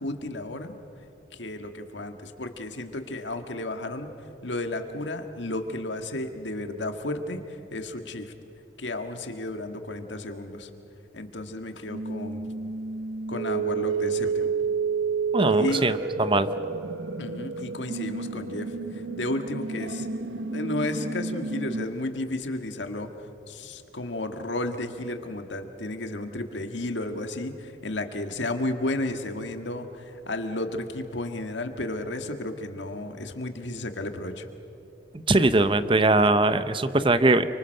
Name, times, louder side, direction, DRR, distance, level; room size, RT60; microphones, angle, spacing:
voice 1, 0.0-0.8 1.3-4.1 4.4-8.3 8.8-10.7 11.1-12.5 13.3-14.5 15.5-15.9 17.2-20.1 20.5-23.1 23.5-34.5, left 2 dB, 90° left, 6 dB, 1.9 m, -33 dB
sound 1, 11.9-21.9, right 5 dB, 85° right, 1.1 m, -30 dB
voice 2, 15.3-16.6 35.3-37.4, right 2 dB, 30° right, 12 dB, 0.8 m, -21 dB
29.5 x 24.5 x 6.6 m, 2.9 s
head